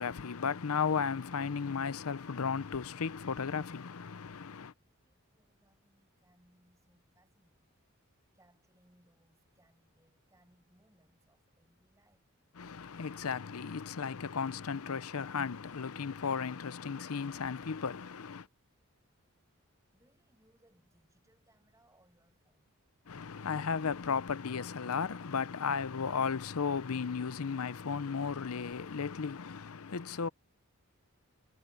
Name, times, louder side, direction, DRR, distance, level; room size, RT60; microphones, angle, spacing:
voice 1, 0.0-4.7 12.6-18.5 23.1-30.3, left 6 dB, 75° left, 0.7 m, -35 dB
voice 2, 5.0-12.2 19.9-22.7, right 1 dB, 15° right, 7.9 m, -69 dB
head